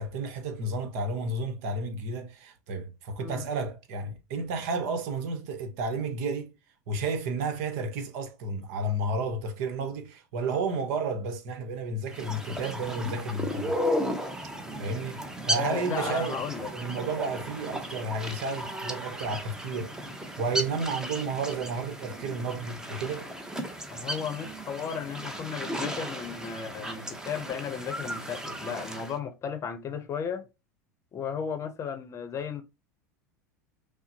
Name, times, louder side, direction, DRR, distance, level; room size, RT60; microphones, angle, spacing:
voice 1, 0.0-6.5 6.9-13.8 14.8-16.4 16.7-23.3, right 3 dB, 60° right, 1.0 m, -32 dB
sound 1, 12.1-29.1, equal, 5° right, 0.8 m, -35 dB
voice 2, 15.5-16.7 23.9-30.5 31.1-32.6, left 7 dB, 30° left, 0.7 m, -35 dB
5.6 x 2.1 x 2.8 m
hypercardioid pair, 90°, 9 cm